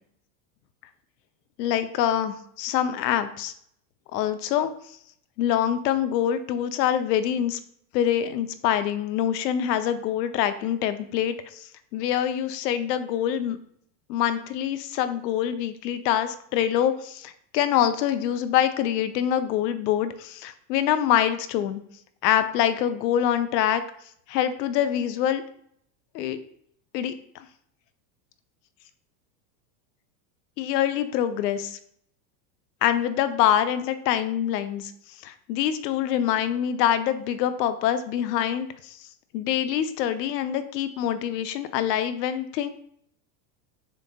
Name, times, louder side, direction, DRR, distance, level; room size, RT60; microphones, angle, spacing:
voice 1, 1.6-3.5 4.1-4.7 5.4-7.6 7.9-13.6 14.1-21.8 22.2-23.8 24.3-25.4 26.1-26.4 26.9-27.4 30.6-31.8 32.8-34.9 35.2-39.0 39.3-42.7, left 10 dB, 80° left, 11 dB, 0.6 m, -25 dB
6.8 x 2.7 x 2.2 m, 0.67 s
supercardioid pair, 180°, 49 cm